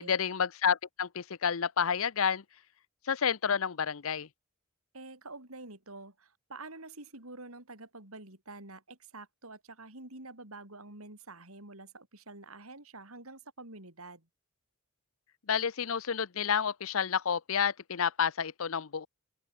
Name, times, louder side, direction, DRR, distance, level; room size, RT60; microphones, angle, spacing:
voice 1, 0.0-2.4 3.1-4.3 15.5-19.1, left 7 dB, 65° left, 0.7 m, -30 dB
voice 2, 4.9-14.3, right 2 dB, 75° right, 6.6 m, -47 dB
open air
head